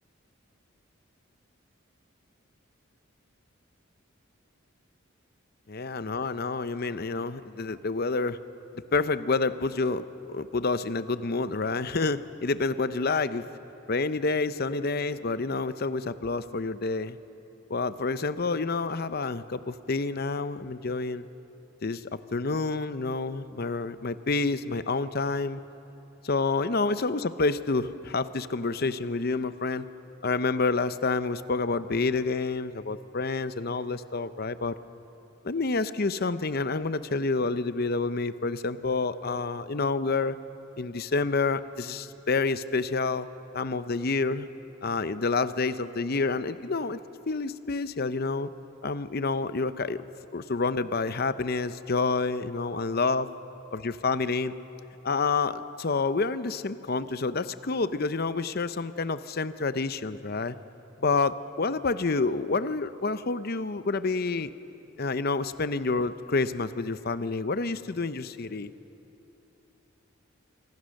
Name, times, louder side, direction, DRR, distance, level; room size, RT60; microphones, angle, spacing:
voice 1, 5.7-8.4 8.9-13.4 13.9-17.2 17.7-21.3 21.8-25.6 26.2-29.9 30.2-34.7 35.4-40.4 40.8-43.3 43.5-44.5 44.8-47.0 47.3-48.5 48.8-50.1 50.3-53.3 53.7-54.5 55.0-60.6 61.0-64.5 65.0-68.7, left 3 dB, 50° left, 13 dB, 0.7 m, -28 dB
26.0 x 25.0 x 6.5 m, 3.0 s
head